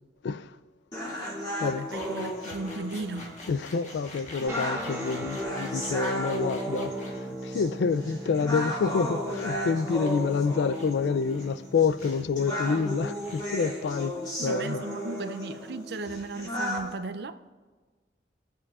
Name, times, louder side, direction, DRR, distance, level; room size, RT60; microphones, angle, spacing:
sound 1, 0.9-16.9, equal, 20° left, 2.2 m, -35 dB
voice 1, 1.6-3.4 14.4-17.4, right 3 dB, 60° right, 0.4 m, -36 dB
sound 2, 1.9-7.2 9.3-9.5 10.0-10.4 10.7-10.9 11.2-11.6 12.0-12.2 12.6-12.9 13.2-13.5 13.7-14.2, left 2 dB, 40° left, 1.3 m, -47 dB
voice 2, 3.5-6.9 7.4-14.2 14.4-14.8, left 5 dB, 70° left, 0.3 m, -27 dB
sound 3, 4.5-13.4, right 1 dB, 15° right, 1.6 m, -40 dB
19.0 x 7.4 x 2.4 m
head